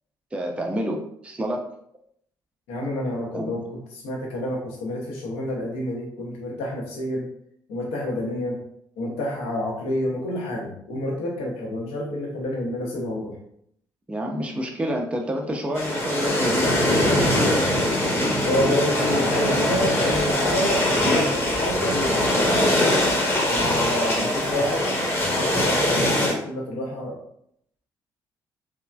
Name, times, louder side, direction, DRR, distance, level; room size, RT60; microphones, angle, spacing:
voice 1, 0.3-1.7 3.3-3.7 14.1-17.3 24.2-24.5, equal, 10° right, 1 dB, 0.4 m, -29 dB
voice 2, 2.7-7.3 7.7-8.6 9.0-13.4 18.4-22.5 23.5-24.9 25.3-27.2, left 1 dB, 65° left, -1 dB, 0.7 m, -28 dB
sound 1, 15.7-26.3, left 1 dB, 20° left, 0.8 m, -22 dB
3.0 x 2.0 x 2.2 m, 0.70 s
figure-of-eight pair, 45°, 11 cm